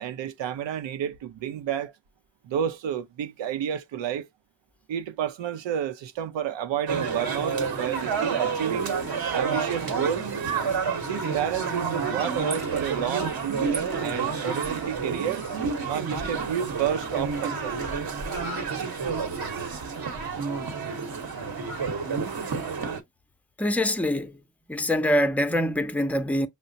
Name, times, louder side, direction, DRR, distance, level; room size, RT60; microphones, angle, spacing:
voice 1, 0.0-1.9 2.4-4.3 4.9-9.0 9.3-10.3 11.0-15.5 15.8-17.7, right 9 dB, 70° right, 0.6 m, -30 dB
sound 1, 6.9-23.0, right 5 dB, 50° right, 1.1 m, -29 dB
voice 2, 23.6-24.4 24.7-26.5, left 1 dB, 5° left, 0.6 m, -24 dB
5.5 x 2.1 x 2.6 m
supercardioid pair, 45°, 46 cm